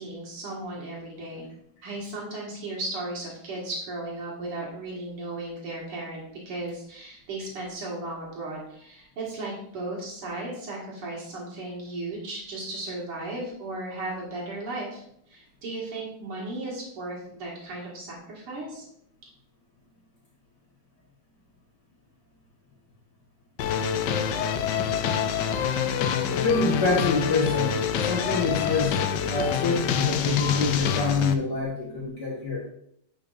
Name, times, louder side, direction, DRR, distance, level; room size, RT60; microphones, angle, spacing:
voice 1, 0.0-1.5 1.8-18.8, right 2 dB, 85° right, -4 dB, 2.8 m, -35 dB
sound 1, 23.6-31.3, left 7 dB, 75° left, 1.0 m, -26 dB
voice 2, 26.3-29.0 29.3-32.6, left 4 dB, 55° left, -5 dB, 2.1 m, -26 dB
9.7 x 5.8 x 2.6 m, 0.70 s
omnidirectional pair, 2.4 m